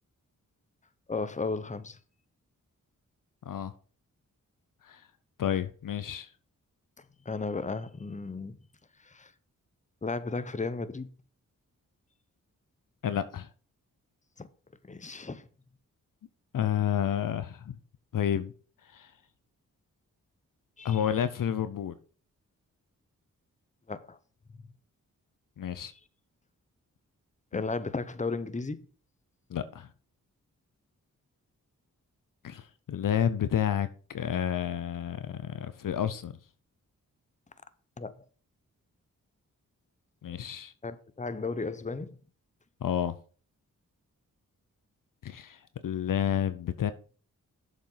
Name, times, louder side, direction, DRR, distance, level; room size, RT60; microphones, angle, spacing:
voice 1, 1.1-2.0 7.0-8.6 9.0-9.3 10.0-11.1 14.4-14.5 14.8-15.5 20.8-21.0 23.9-24.2 27.5-28.8 38.0-38.2 40.8-42.2, left 3 dB, 20° left, 0.8 m, -34 dB
voice 2, 5.4-6.3 13.0-13.5 16.5-17.8 18.1-18.5 18.9-19.1 20.8-22.0 25.6-25.9 27.5-27.6 29.5-29.9 32.4-36.4 40.2-40.7 42.8-43.2 45.2-46.9, left 9 dB, 65° left, 0.7 m, -30 dB
7.2 x 5.3 x 5.6 m
cardioid pair, 40°, 35 cm